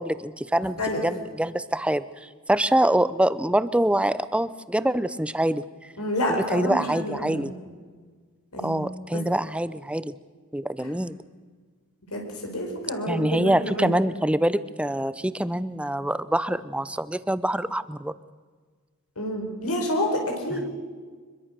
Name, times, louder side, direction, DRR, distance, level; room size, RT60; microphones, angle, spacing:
voice 1, 0.0-5.9 6.5-7.5 8.6-10.1 10.5-11.2 13.1-18.1 20.5-20.8, right 1 dB, 5° right, 15 dB, 0.6 m, -25 dB
voice 2, 6.0-7.5 8.5-8.8 9.1-9.2 12.1-14.0 19.2-20.7, equal, 90° left, 2 dB, 5.1 m, -28 dB
24.5 x 22.0 x 6.7 m, 1.5 s
head